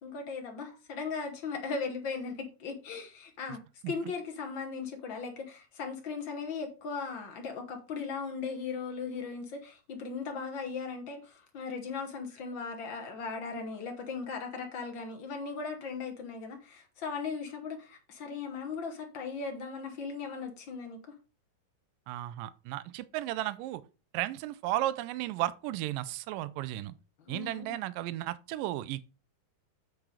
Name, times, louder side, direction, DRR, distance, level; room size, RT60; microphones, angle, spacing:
voice 1, 0.0-21.0 27.2-27.8, left 5 dB, 80° left, 1.0 m, -38 dB
voice 2, 22.1-23.8 24.1-26.9 27.3-29.1, right 15 dB, 80° right, 2.2 m, -34 dB
8.9 x 4.7 x 4.9 m
omnidirectional pair, 4.2 m